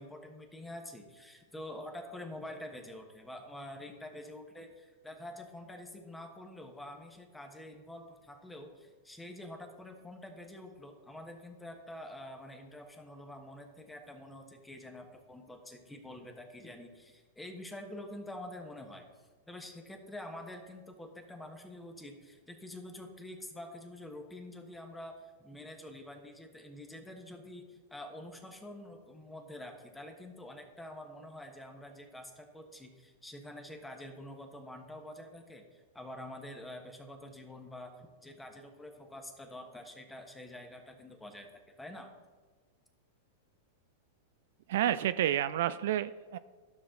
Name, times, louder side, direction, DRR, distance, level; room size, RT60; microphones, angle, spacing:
voice 1, 0.0-19.1 19.5-42.1, left 1 dB, 10° left, 4 dB, 1.3 m, -47 dB
voice 2, 44.7-46.4, right 11 dB, 70° right, 14 dB, 0.3 m, -30 dB
12.0 x 6.2 x 3.8 m, 1.4 s
hypercardioid pair, 115°, 0 cm